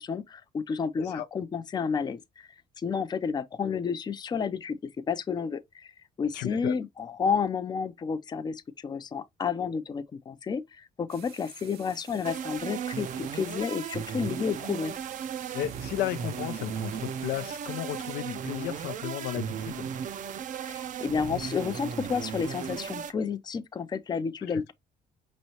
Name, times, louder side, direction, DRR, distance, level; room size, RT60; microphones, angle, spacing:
voice 1, 0.0-2.5 2.8-4.8 5.1-5.9 6.2-14.9 20.6-24.7, left 6 dB, 25° left, 0.5 m, -31 dB
voice 2, 6.3-6.7 15.5-19.9 24.5-24.6, left 14 dB, 80° left, 0.5 m, -34 dB
sound 1, 11.1-18.2, right 10 dB, 70° right, 0.9 m, -51 dB
sound 2, 12.2-23.1, right 8 dB, 50° right, 0.5 m, -36 dB
5.3 x 3.1 x 2.8 m
cardioid pair, 110°, 17 cm